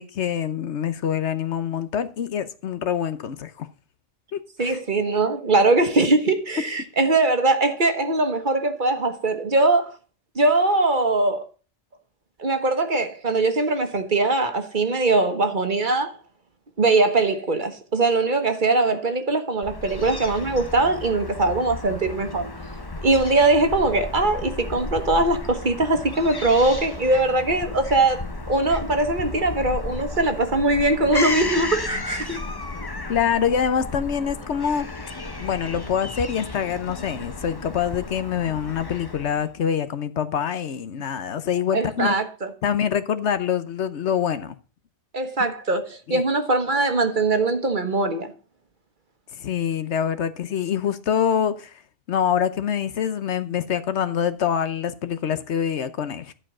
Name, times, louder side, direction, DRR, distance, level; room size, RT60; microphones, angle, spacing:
voice 1, 0.0-3.7 4.3-4.8 31.9-32.0 33.1-34.9 35.4-42.1 42.6-44.6 46.1-46.2 49.4-51.7 52.1-56.3, left 8 dB, 75° left, 1.1 m, -25 dB
voice 2, 4.6-9.9 10.3-11.4 12.4-16.1 16.8-22.5 23.0-32.4 41.7-42.5 45.1-48.3, right 2 dB, 45° right, 1.4 m, -21 dB
Fowl / Gull seagull, 19.6-39.5, left 2 dB, 20° left, 0.8 m, -33 dB
11.5 x 5.0 x 6.0 m
omnidirectional pair, 1.2 m